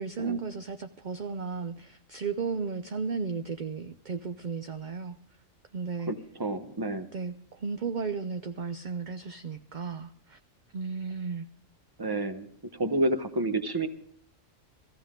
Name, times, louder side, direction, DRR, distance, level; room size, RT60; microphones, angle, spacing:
voice 1, 0.0-5.2 5.7-6.1 7.1-10.4 10.7-11.5, right 5 dB, 50° right, 8 dB, 0.6 m, -34 dB
voice 2, 6.1-7.1 12.0-12.5 12.7-13.9, right 2 dB, 20° right, 8 dB, 0.9 m, -29 dB
18.0 x 14.5 x 3.7 m, 0.68 s
omnidirectional pair, 1.4 m